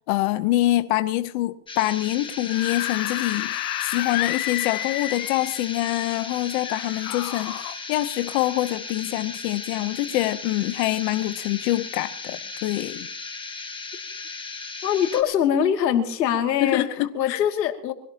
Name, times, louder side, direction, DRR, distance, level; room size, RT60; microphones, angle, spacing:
voice 1, 0.1-13.1 16.6-17.4, left 16 dB, 45° left, 0.9 m, -25 dB
sound 1, 1.7-15.2, left 4 dB, 10° left, 1.6 m, -36 dB
Screaming / Screech, 2.3-5.7 6.6-7.7, left 16 dB, 60° left, 1.2 m, -30 dB
voice 2, 14.8-16.9 17.1-17.9, left 9 dB, 90° left, 2.6 m, -22 dB
24.5 x 17.0 x 2.9 m
supercardioid pair, 140°, 48 cm